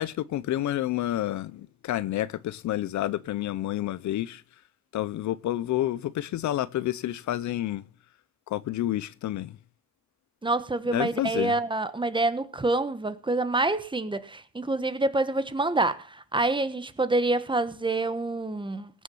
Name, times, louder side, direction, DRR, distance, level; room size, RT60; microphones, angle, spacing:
voice 1, 0.0-4.4 4.9-7.8 8.5-9.6 10.9-11.5, left 13 dB, 70° left, 0.7 m, -29 dB
voice 2, 10.4-18.9, right 2 dB, 15° right, 1.3 m, -27 dB
18.0 x 7.3 x 5.5 m
cardioid pair, 90°, 30 cm